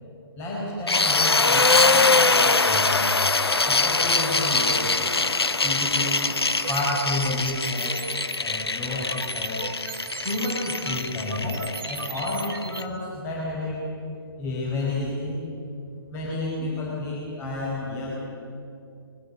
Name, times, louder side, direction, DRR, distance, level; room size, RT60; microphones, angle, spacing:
voice 1, 0.4-3.1 3.6-4.9 5.6-6.2 6.7-8.1 8.4-9.6 10.2-13.9 14.4-15.4 16.1-18.2, left 2 dB, 20° left, -5 dB, 4.8 m, -30 dB
sound 1, 0.9-12.8, left 3 dB, 85° left, 1.0 m, -23 dB
sound 2, 5.9-8.4 8.7-12.8, right 6 dB, 60° right, 1.5 m, -39 dB
21.0 x 13.0 x 9.8 m, 2.6 s
figure-of-eight pair, 135°, 13 cm